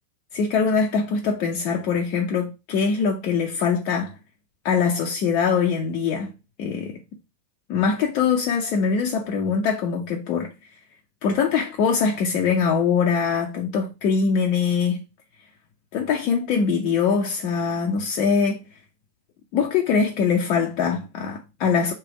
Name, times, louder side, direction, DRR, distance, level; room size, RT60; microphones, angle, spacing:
voice 1, 0.3-4.1 4.6-6.3 6.6-7.0 7.7-10.5 11.2-15.0 15.9-18.6 19.5-21.9, left 6 dB, 40° left, 0.6 m, -22 dB
3.4 x 3.0 x 4.7 m
figure-of-eight pair, 90°, 0 cm